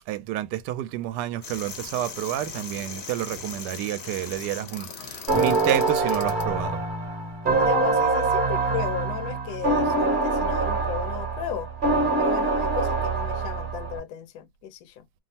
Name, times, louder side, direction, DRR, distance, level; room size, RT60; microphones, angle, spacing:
voice 1, 0.1-6.8, right 13 dB, 75° right, 1.1 m, -30 dB
sound 1, 1.4-6.5, left 5 dB, 55° left, 0.7 m, -39 dB
sound 2, 5.3-14.0, right 3 dB, 35° right, 1.0 m, -24 dB
voice 2, 7.5-11.7 12.2-15.0, left 10 dB, 75° left, 1.2 m, -34 dB
3.3 x 2.0 x 2.7 m
omnidirectional pair, 1.9 m